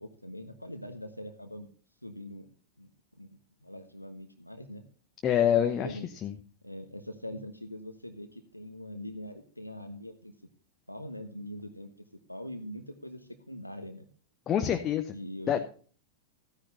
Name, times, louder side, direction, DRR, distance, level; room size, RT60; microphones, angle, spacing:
voice 1, 0.0-1.7 2.0-2.5 2.8-2.9 3.2-3.3 3.6-4.8 5.8-6.1 6.6-10.3 10.9-14.1 15.1-15.6, left 1 dB, 90° left, 7 dB, 1.1 m, -42 dB
voice 2, 5.2-6.3 14.5-15.1 15.5-15.6, left 9 dB, 30° left, 5 dB, 1.0 m, -26 dB
15.0 x 10.0 x 2.8 m, 0.41 s
figure-of-eight pair, 90°, 0 cm